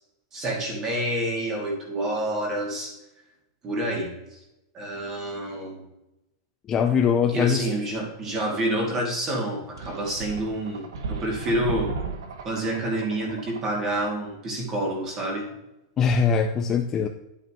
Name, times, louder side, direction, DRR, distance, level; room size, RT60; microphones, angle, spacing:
voice 1, 0.3-2.9 3.6-4.4 4.7-5.8 7.3-11.9 12.4-15.5, right 1 dB, 20° right, 0 dB, 2.4 m, -28 dB
voice 2, 6.7-7.7 16.0-17.1, left 6 dB, 20° left, 5 dB, 0.4 m, -22 dB
sound 1, 9.8-14.3, right 4 dB, 85° right, 1.4 m, -36 dB
10.5 x 8.8 x 3.0 m, 0.94 s
supercardioid pair, 170°, 2 cm